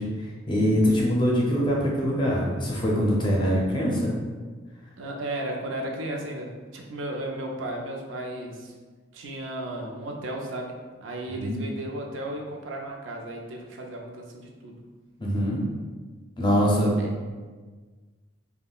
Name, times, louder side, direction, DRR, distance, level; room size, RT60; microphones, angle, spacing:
voice 1, 0.0-4.2 11.4-11.6 15.2-15.7 16.4-17.0, equal, 25° left, -3 dB, 0.5 m, -23 dB
voice 2, 5.0-8.7 9.1-14.8 16.8-17.1, right 1 dB, 85° right, 1 dB, 0.5 m, -35 dB
3.5 x 2.1 x 2.3 m, 1.4 s
head